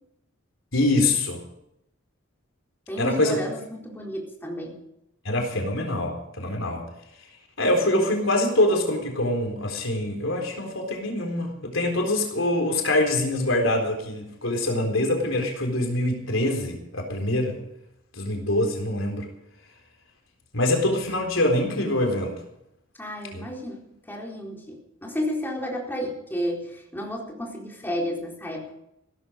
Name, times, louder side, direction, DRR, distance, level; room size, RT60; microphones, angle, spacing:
voice 1, 0.7-1.4 3.0-3.4 5.2-6.8 7.6-17.6 18.1-19.3 20.5-22.4 23.3-23.5, left 1 dB, 75° left, 3 dB, 4.0 m, -24 dB
voice 2, 2.9-4.8 23.0-23.8 24.1-28.7, equal, 10° left, -2 dB, 4.1 m, -32 dB
16.5 x 13.5 x 5.2 m, 0.81 s
head